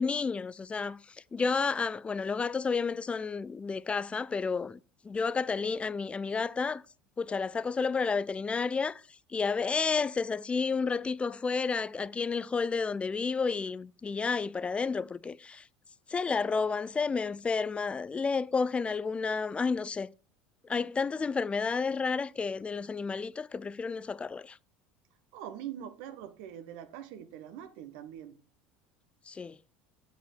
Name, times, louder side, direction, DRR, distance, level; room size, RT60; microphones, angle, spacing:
voice 1, 0.0-4.8 5.0-6.8 7.2-9.0 9.3-15.7 16.1-20.1 20.6-24.6 29.3-29.6, left 5 dB, 20° left, 0.4 m, -31 dB
voice 2, 25.3-28.4, right 10 dB, 65° right, 1.1 m, -43 dB
7.9 x 5.1 x 6.0 m
hypercardioid pair, 80°, 6 cm